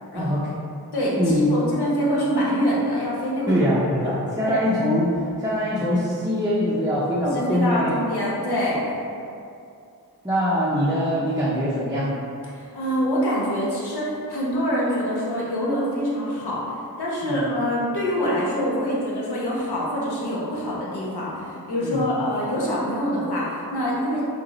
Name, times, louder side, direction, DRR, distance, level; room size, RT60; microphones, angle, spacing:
voice 1, 0.1-0.5 1.2-1.6 3.5-7.9 10.2-12.1 17.2-17.4 21.8-22.1, equal, 10° right, -9 dB, 0.5 m, -23 dB
voice 2, 0.9-3.6 4.4-4.6 7.2-9.0 12.5-16.6 17.0-24.3, equal, 85° left, -5 dB, 0.9 m, -25 dB
5.0 x 2.0 x 3.0 m, 2.5 s
wide cardioid pair, 70°, 38 cm